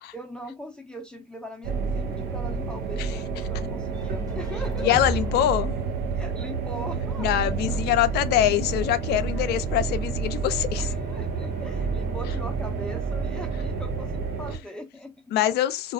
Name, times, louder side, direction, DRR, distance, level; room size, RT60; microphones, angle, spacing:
voice 1, 0.1-5.2 6.1-8.0 9.3-9.6 10.8-15.4, equal, 5° left, 0.6 m, -40 dB
sound 1, 1.6-14.6, right 5 dB, 60° right, 0.8 m, -29 dB
sound 2, 3.9-7.8, right 1 dB, 20° right, 1.2 m, -37 dB
voice 2, 4.8-5.7 7.2-10.9 15.3-15.9, left 12 dB, 60° left, 0.4 m, -24 dB
2.4 x 2.2 x 2.6 m
hypercardioid pair, 60°, 19 cm